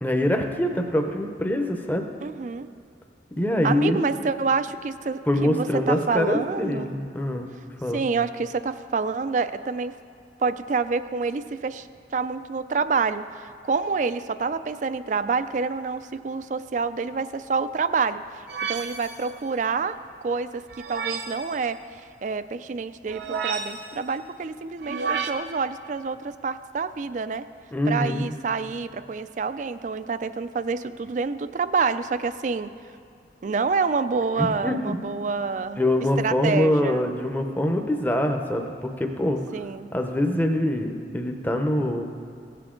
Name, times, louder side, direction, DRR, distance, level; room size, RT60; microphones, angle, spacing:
voice 1, 0.0-2.1 3.4-4.0 5.3-7.5 7.8-8.0 27.7-28.3 34.4-35.0 35.8-39.4 39.9-42.1, left 1 dB, 10° left, 4 dB, 0.7 m, -24 dB
voice 2, 2.2-2.7 3.6-6.9 7.9-10.0 10.4-11.9 12.1-18.2 18.7-20.6 20.9-27.5 27.9-32.7 33.4-35.8 36.2-37.1 39.5-39.9, right 4 dB, 45° right, 13 dB, 0.3 m, -27 dB
sound 1, 18.5-19.3 20.7-21.5 23.1-24.0 24.8-25.3, right 6 dB, 70° right, 0.7 m, -31 dB
16.5 x 8.3 x 3.8 m, 2.6 s
head